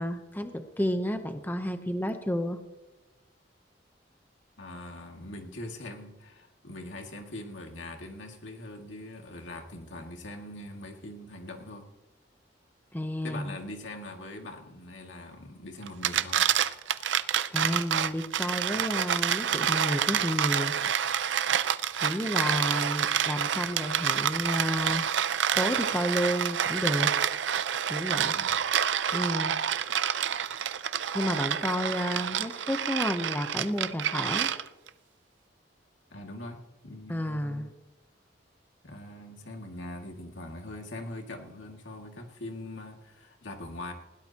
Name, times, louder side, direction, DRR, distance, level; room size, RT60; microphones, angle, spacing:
voice 1, 0.0-2.6 12.9-13.6 17.5-20.8 22.0-25.1 25.6-27.1 27.9-28.4 29.1-29.5 31.1-34.5 37.1-37.7, equal, 10° left, 7 dB, 0.8 m, -31 dB
voice 2, 4.6-11.9 13.2-16.4 28.3-28.6 36.1-36.6 36.8-37.7 38.8-43.9, left 1 dB, 85° left, 2 dB, 2.2 m, -42 dB
sound 1, 15.9-34.9, right 9 dB, 75° right, 0.5 m, -28 dB
20.0 x 17.0 x 2.9 m, 1.1 s
head